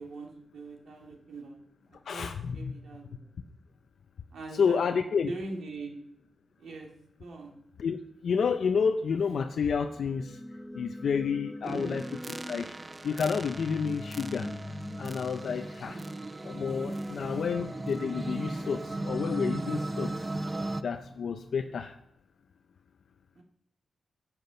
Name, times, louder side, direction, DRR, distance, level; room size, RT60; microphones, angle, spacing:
voice 1, 0.0-1.6 2.1-3.3 4.3-5.0 5.3-6.0 6.6-6.9 7.2-7.6 11.7-12.0 15.9-16.2 23.4-23.5, right 3 dB, 75° right, 1 dB, 2.2 m, -42 dB
voice 2, 2.1-2.7 4.5-5.3 7.8-10.4 10.7-12.7 13.0-14.5 15.0-16.0 16.4-20.1 20.8-21.9, left 6 dB, 70° left, 6 dB, 0.6 m, -30 dB
sound 1, 9.9-21.8, left 1 dB, 5° left, 0.8 m, -44 dB
sound 2, 11.6-20.8, right 2 dB, 30° right, 0.5 m, -37 dB
10.5 x 5.9 x 6.9 m, 0.79 s
cardioid pair, 75°, 0 cm